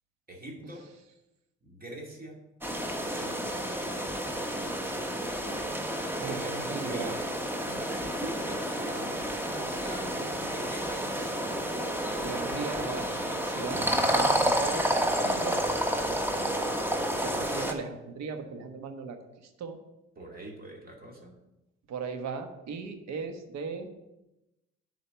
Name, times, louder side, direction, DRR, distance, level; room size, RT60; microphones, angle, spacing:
voice 1, 0.3-0.9 1.6-2.4 2.9-3.6 6.2-7.3 7.6-9.3 9.8-11.3 12.1-12.6 16.0-16.6 20.2-21.3, right 1 dB, 30° right, 0 dB, 2.3 m, -44 dB
sound 1, 2.6-17.7, equal, 5° right, 1.2 m, -30 dB
voice 2, 6.2-7.2 12.2-13.1 13.4-15.7 17.0-19.8 21.9-23.9, right 5 dB, 65° right, 6 dB, 1.3 m, -38 dB
6.7 x 4.9 x 7.0 m, 0.94 s
supercardioid pair, 65°, 29 cm